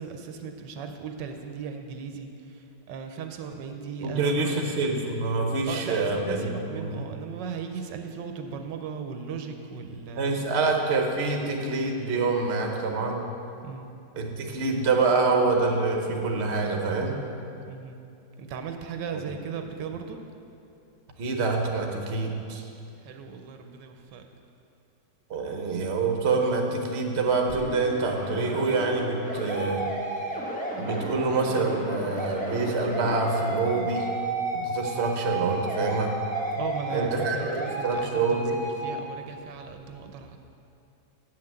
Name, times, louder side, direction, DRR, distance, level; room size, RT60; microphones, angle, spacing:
voice 1, 0.0-4.6 5.7-10.3 13.6-13.9 17.7-18.0 18.4-20.2 23.0-24.3 34.9-35.1 36.5-40.4, right 6 dB, 80° right, 5 dB, 1.3 m, -37 dB
voice 2, 4.0-7.0 10.2-13.2 14.2-17.2 21.2-22.6 25.3-29.8 30.8-34.1 34.5-36.2 36.9-38.6, right 3 dB, 45° right, 2 dB, 1.1 m, -26 dB
sound 1, 27.5-38.8, right 1 dB, 5° left, 1.0 m, -33 dB
8.1 x 5.8 x 7.6 m, 2.7 s
omnidirectional pair, 1.9 m